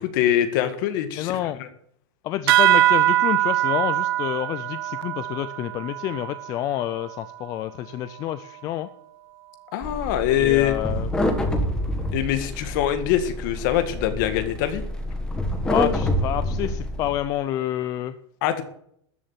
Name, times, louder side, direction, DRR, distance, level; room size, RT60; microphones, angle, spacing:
voice 1, 0.0-1.3 1.6-1.7 9.7-10.7 12.1-14.8 18.4-18.6, left 11 dB, 45° left, 9 dB, 1.9 m, -23 dB
voice 2, 1.2-1.6 2.2-8.9 10.4-11.1 15.6-18.1, left 13 dB, 25° left, 12 dB, 0.5 m, -28 dB
sound 1, 2.5-7.4, right 14 dB, 55° right, 0.7 m, -22 dB
sound 2, 9.8-17.2, left 1 dB, 5° left, 1.4 m, -27 dB
13.5 x 7.6 x 8.8 m, 0.67 s
supercardioid pair, 175°, 15 cm